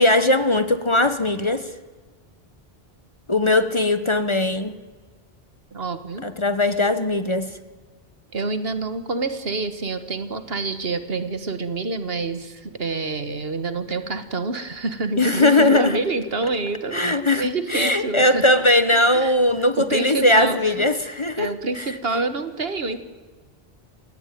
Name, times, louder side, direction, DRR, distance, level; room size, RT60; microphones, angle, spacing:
voice 1, 0.0-1.7 3.3-4.7 6.2-7.6 15.2-16.0 16.9-21.5 21.8-21.9, left 2 dB, 30° left, 11 dB, 1.1 m, -19 dB
voice 2, 5.7-6.3 8.3-18.4 19.1-19.3 19.8-20.7 21.4-23.0, right 3 dB, 65° right, 10 dB, 1.8 m, -27 dB
28.0 x 17.0 x 9.3 m, 1.4 s
omnidirectional pair, 1.1 m